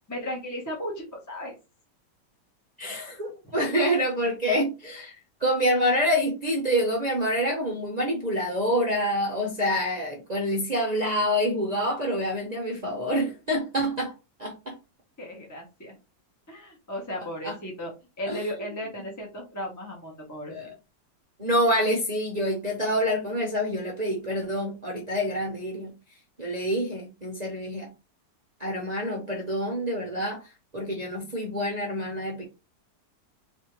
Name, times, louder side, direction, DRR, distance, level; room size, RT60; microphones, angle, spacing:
voice 1, 0.1-1.5 3.0-3.1 3.4-3.7 6.1-6.2 15.2-16.0 16.5-17.9 18.2-20.5, equal, 15° left, 0.7 m, -36 dB
voice 2, 2.8-5.1 5.4-14.8 17.4-17.5 18.2-18.4 20.5-20.7 21.4-25.9 26.4-27.9 28.6-30.4 30.7-32.5, equal, 40° right, 0.6 m, -27 dB
4.2 x 2.7 x 3.1 m
omnidirectional pair, 1.9 m